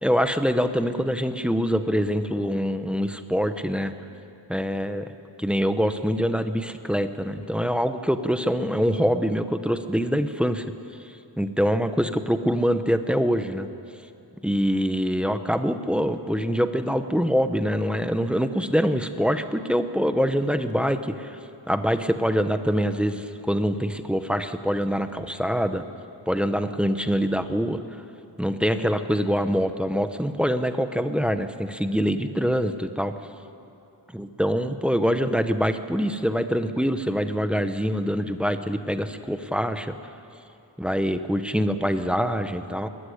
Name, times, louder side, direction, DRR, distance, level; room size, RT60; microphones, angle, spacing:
voice 1, 0.0-3.9 4.5-5.1 5.4-10.6 11.4-13.7 14.4-21.3 21.7-25.8 26.3-27.8 28.4-33.1 34.1-39.9 40.8-42.9, equal, ahead, 9 dB, 0.8 m, -24 dB
21.0 x 15.0 x 10.0 m, 2.7 s
wide cardioid pair, 170°, 45 cm